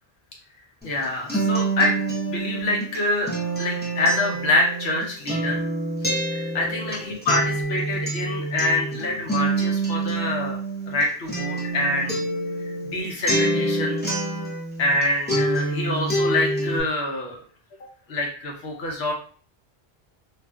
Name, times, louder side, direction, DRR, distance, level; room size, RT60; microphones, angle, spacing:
voice 1, 0.8-2.0 2.3-3.3 3.6-5.6 6.1-12.2 12.6-14.1 14.8-17.4 18.1-19.1, left 2 dB, 90° left, 0 dB, 1.0 m, -26 dB
Acoustic guitar, 0.8-15.0 15.3-16.8, right 2 dB, 10° left, 0.6 m, -26 dB
2.7 x 2.4 x 2.3 m, 0.43 s
omnidirectional pair, 1.1 m